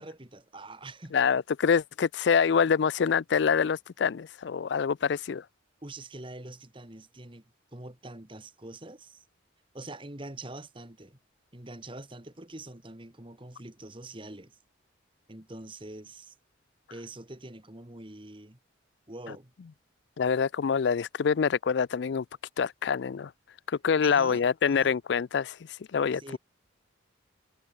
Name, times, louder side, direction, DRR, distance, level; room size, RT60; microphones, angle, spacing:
voice 1, 0.0-1.1 5.8-7.4 7.7-9.2 9.7-11.2 11.5-14.6 15.3-16.3 16.9-18.6 19.1-19.5 24.0-25.0 26.1-26.4, right 2 dB, 25° right, 1.8 m, -44 dB
voice 2, 1.1-5.4 20.2-22.2 22.6-23.3 23.7-26.4, left 6 dB, 60° left, 0.4 m, -26 dB
head